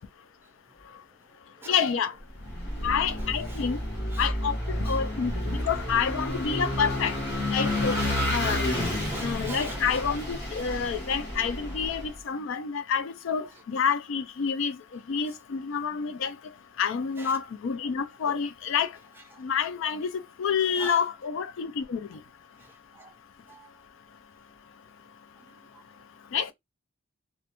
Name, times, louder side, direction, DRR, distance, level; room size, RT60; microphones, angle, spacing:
voice 1, 1.7-2.1 2.8-3.8 4.2-7.2 7.5-8.0 8.3-8.6 9.2-16.3 16.8-18.9 19.4-20.1 20.4-22.2 26.3-26.5, left 6 dB, 70° left, 0.4 m, -28 dB
Vehicle / Engine, 2.3-12.1, left 1 dB, 50° left, 1.1 m, -30 dB
voice 2, 8.7-9.8 20.8-20.9 23.0-23.1 23.5-23.6, right 3 dB, 10° right, 0.4 m, -41 dB
2.3 x 2.1 x 2.9 m
head